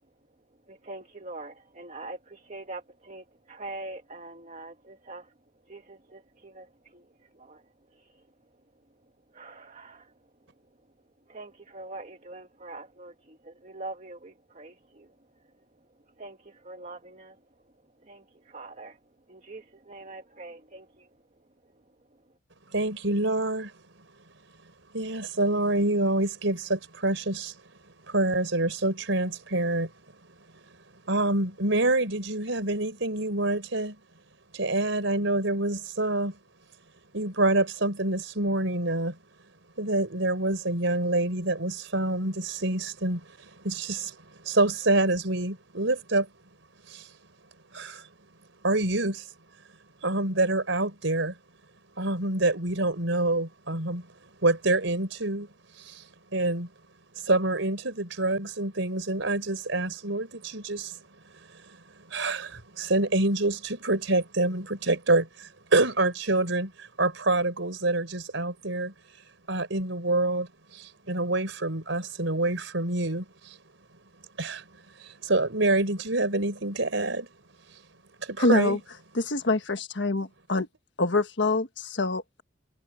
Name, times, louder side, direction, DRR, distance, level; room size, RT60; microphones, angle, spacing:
voice 1, 0.7-5.3 5.7-6.7 6.9-7.1 7.3-7.6 8.0-8.1 9.3-10.1 11.3-15.1 16.2-17.4 18.0-19.0 19.3-21.1, right 2 dB, 40° right, 1.6 m, -43 dB
voice 2, 22.7-23.7 24.9-27.5 28.1-29.9 31.1-34.0 34.5-36.4 37.1-39.2 39.8-44.2 44.4-46.3 46.9-47.1 47.7-48.0 48.6-49.2 50.0-51.3 52.0-54.1 54.4-55.5 55.8-56.0 56.3-56.7 57.2-61.0 62.0-68.9 69.5-73.6 74.4-74.6 75.2-77.3 78.2-78.8, right 2 dB, 80° right, 4.4 m, -26 dB
voice 3, 78.4-78.8 79.1-80.7 81.0-82.4, left 2 dB, 65° left, 1.5 m, -25 dB
head